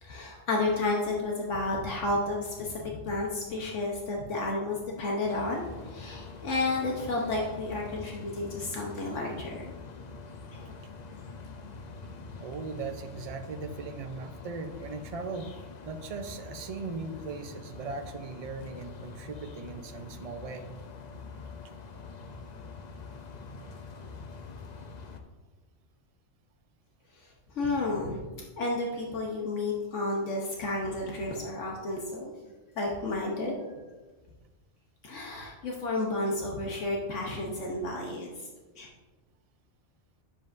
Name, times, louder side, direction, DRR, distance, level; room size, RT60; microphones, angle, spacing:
voice 1, 0.0-9.6 10.5-10.7 27.1-28.2 28.6-32.3 32.8-33.7 35.0-38.5 38.8-38.9, left 2 dB, 75° left, -2 dB, 1.3 m, -31 dB
sound 1, 5.2-25.2, left 4 dB, 45° left, 0.6 m, -45 dB
voice 2, 12.4-15.5 15.8-20.7, right 4 dB, 40° right, 7 dB, 0.6 m, -38 dB
10.0 x 7.4 x 2.6 m, 1.3 s
omnidirectional pair, 1.3 m